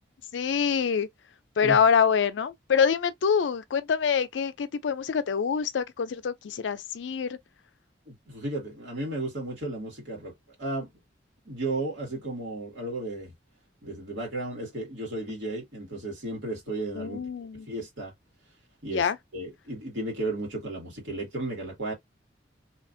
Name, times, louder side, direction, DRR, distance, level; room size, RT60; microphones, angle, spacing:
voice 1, 0.3-1.1 1.6-7.4 17.0-17.7 18.9-19.2, left 6 dB, 90° left, 0.4 m, -25 dB
voice 2, 8.1-10.3 10.6-10.9 11.5-13.3 13.8-17.2 17.7-18.1 18.8-21.9, right 2 dB, 85° right, 1.7 m, -34 dB
2.9 x 2.4 x 2.5 m
head